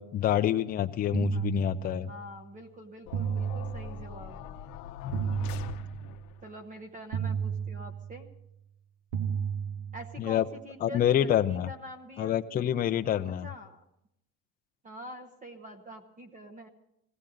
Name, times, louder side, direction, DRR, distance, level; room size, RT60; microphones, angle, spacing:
voice 1, 0.0-2.1 10.2-10.5 10.8-11.7 12.2-13.5, left 11 dB, 25° left, 8 dB, 0.5 m, -27 dB
sound 1, 1.1-2.3 3.1-4.3 5.1-6.3 7.1-8.3 9.1-10.3, right 7 dB, 70° right, 1.6 m, -33 dB
voice 2, 2.1-4.4 6.4-8.3 9.9-12.4 13.4-13.8 14.8-16.7, equal, 20° right, 7 dB, 1.0 m, -45 dB
sound 2, 3.1-6.4, left 10 dB, 65° left, 0.9 m, -42 dB
21.0 x 16.5 x 3.9 m, 0.81 s
cardioid pair, 155°, 37 cm